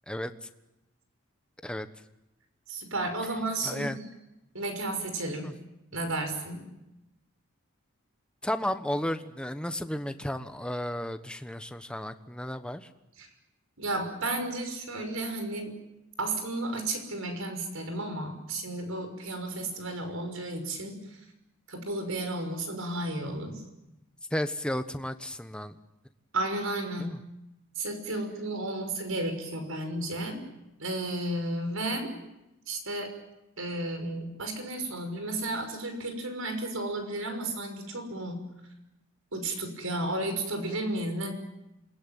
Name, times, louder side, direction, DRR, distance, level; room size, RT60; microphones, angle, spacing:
voice 1, 2.7-4.0 4.5-5.5 5.9-6.7 13.2-13.3 13.8-15.8 16.2-21.2 21.7-23.6 26.3-27.1 27.8-30.4 30.8-32.1 32.7-33.1 33.6-38.4 39.3-41.3, right 2 dB, 80° right, 6 dB, 6.1 m, -33 dB
voice 2, 3.6-4.0 5.4-5.5 8.4-12.9 24.3-25.8 27.0-27.2, equal, 5° left, 8 dB, 1.2 m, -33 dB
27.5 x 21.0 x 9.3 m, 0.95 s
head